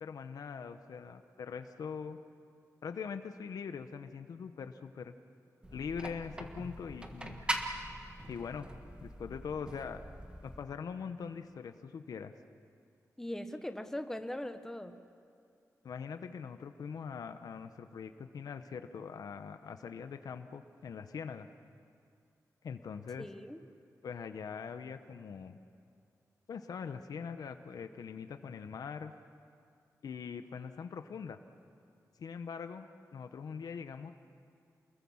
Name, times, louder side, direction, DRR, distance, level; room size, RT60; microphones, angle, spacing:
voice 1, 0.0-2.2 2.8-5.1 5.7-7.4 8.3-8.7 9.0-10.0 10.4-12.3 15.8-21.5 22.6-23.3 24.0-25.6 26.5-29.1 30.0-31.4 32.2-32.9 33.1-34.1, left 6 dB, 90° left, 8 dB, 1.0 m, -42 dB
sound 1, 5.6-10.6, right 1 dB, 15° right, 1.6 m, -41 dB
voice 2, 13.2-15.0 23.2-23.6, left 1 dB, 5° left, 8 dB, 1.1 m, -40 dB
29.0 x 21.5 x 7.3 m, 2.4 s
wide cardioid pair, 175°, 6 cm